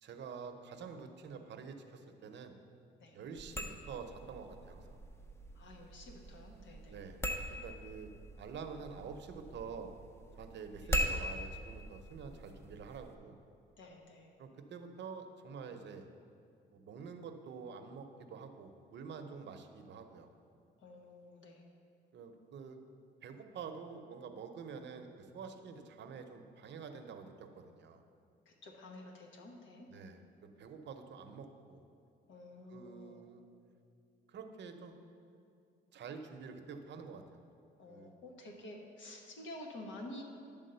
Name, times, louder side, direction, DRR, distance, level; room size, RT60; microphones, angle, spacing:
voice 1, 0.0-2.5 3.1-5.0 6.9-7.2 7.5-8.1 8.4-9.9 10.4-13.4 14.4-16.1 16.7-20.3 22.1-22.8 23.2-28.0 29.9-30.2 30.6-31.9 32.7-33.4 34.3-35.0 35.9-37.4 37.9-38.1, right 5 dB, 65° right, 6 dB, 0.8 m, -47 dB
sound 1, 3.4-13.1, equal, 15° left, 0.6 m, -41 dB
voice 2, 5.5-7.0 10.8-10.9 13.8-14.3 20.8-21.6 28.4-29.9 32.3-33.2 37.8-40.2, left 1 dB, 70° left, 2 dB, 1.2 m, -50 dB
10.5 x 3.6 x 6.7 m, 2.5 s
cardioid pair, 90°, 20 cm